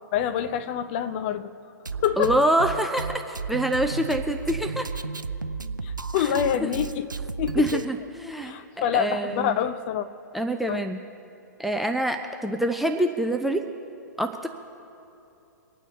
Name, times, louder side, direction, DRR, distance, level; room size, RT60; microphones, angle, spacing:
voice 1, 0.1-1.5 2.0-2.3 5.8-7.1 7.4-7.8 8.4-10.1 10.7-10.8, left 9 dB, 35° left, 9 dB, 0.8 m, -26 dB
Drum kit, 1.9-7.9, right 4 dB, 85° right, 0.6 m, -33 dB
voice 2, 2.2-4.9 6.3-6.7 7.5-8.6 8.9-9.6 10.3-11.0 11.6-13.6 14.2-14.5, right 1 dB, ahead, 6 dB, 0.5 m, -25 dB
25.0 x 9.2 x 4.1 m, 2.9 s
figure-of-eight pair, 120°, 10 cm